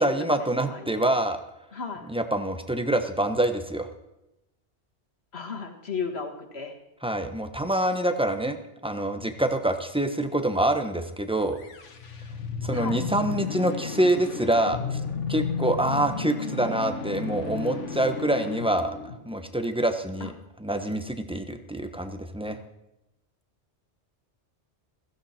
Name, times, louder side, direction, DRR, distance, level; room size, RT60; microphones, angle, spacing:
voice 1, 0.0-1.4 2.1-3.9 7.0-8.6 8.8-11.6 12.6-15.0 15.3-18.9 19.2-20.3 20.6-22.6, right 1 dB, 5° right, 7 dB, 1.1 m, -26 dB
voice 2, 0.6-1.1 1.7-2.1 5.3-6.8 12.7-13.1 20.2-20.3, left 5 dB, 60° left, 3 dB, 1.9 m, -34 dB
sound 1, 11.5-19.6, left 5 dB, 80° left, 1.6 m, -33 dB
16.0 x 15.5 x 4.4 m, 0.91 s
omnidirectional pair, 1.2 m